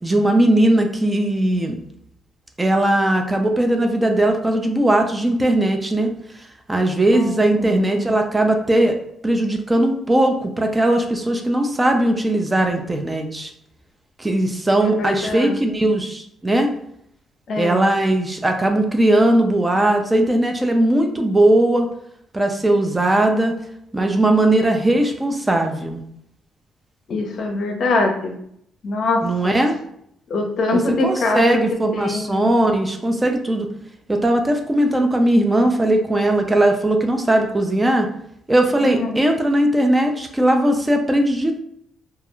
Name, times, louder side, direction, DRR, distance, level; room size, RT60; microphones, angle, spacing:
voice 1, 0.0-1.7 2.6-6.1 6.7-8.9 9.2-13.5 14.2-16.7 17.6-21.9 22.3-23.6 23.9-26.0 29.2-29.8 30.7-33.7 34.1-38.1 38.5-41.6, right 1 dB, 15° right, 4 dB, 0.4 m, -18 dB
voice 2, 7.1-8.0 14.8-15.6 17.5-17.8 27.1-28.3 28.8-29.6 30.3-31.6 32.0-32.5 38.8-39.2, left 2 dB, 60° left, 3 dB, 0.5 m, -23 dB
2.3 x 2.2 x 2.9 m, 0.71 s
cardioid pair, 90°, 0 cm